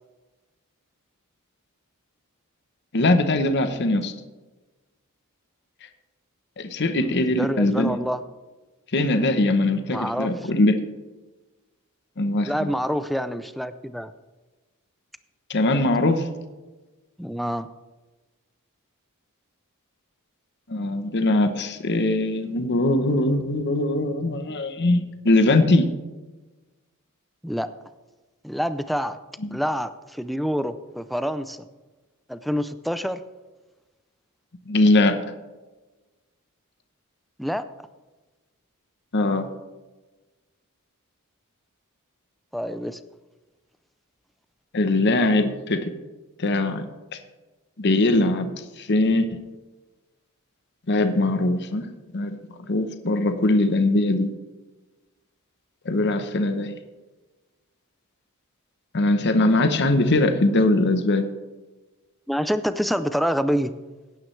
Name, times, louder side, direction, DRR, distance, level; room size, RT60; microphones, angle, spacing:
voice 1, 2.9-4.1 6.6-8.0 8.9-10.8 12.2-12.7 15.5-16.3 20.7-25.9 29.4-29.6 34.7-35.2 39.1-39.5 44.7-45.9 46.4-46.9 47.8-49.3 50.9-51.9 52.1-52.4 52.7-54.3 55.8-56.7 58.9-61.3, left 2 dB, 50° left, 8 dB, 0.9 m, -21 dB
voice 2, 7.0-8.2 9.9-10.3 12.4-14.1 17.2-17.7 27.4-27.7 28.4-29.2 29.5-31.6 32.3-33.2 37.4-37.6 42.5-43.0 62.3-63.7, equal, ahead, 12 dB, 0.4 m, -27 dB
17.0 x 9.3 x 3.2 m, 1.2 s
head